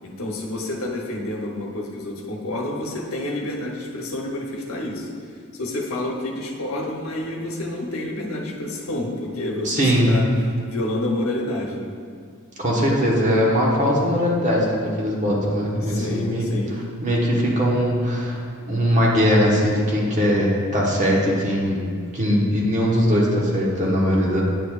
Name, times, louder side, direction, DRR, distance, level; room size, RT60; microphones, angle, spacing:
voice 1, 0.0-5.1 5.5-10.3 10.7-11.9 15.8-16.8, left 1 dB, 75° left, 0 dB, 1.0 m, -29 dB
voice 2, 9.6-10.2 12.6-16.5 17.0-18.4 18.7-24.4, equal, 35° right, -4 dB, 1.2 m, -20 dB
9.1 x 6.8 x 2.4 m, 2.1 s
head